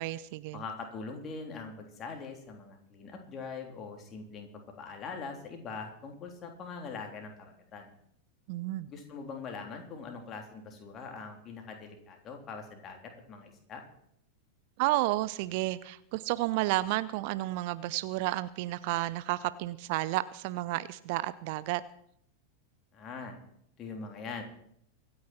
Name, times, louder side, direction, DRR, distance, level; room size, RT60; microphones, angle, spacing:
voice 1, 0.0-0.6 8.5-8.9 14.8-21.8, right 17 dB, 45° right, 17 dB, 0.6 m, -31 dB
voice 2, 0.5-7.9 8.9-13.8 22.9-23.4 23.8-24.4, left 4 dB, 30° left, 3 dB, 3.5 m, -42 dB
24.5 x 9.6 x 4.5 m, 0.70 s
figure-of-eight pair, 90°, 0 cm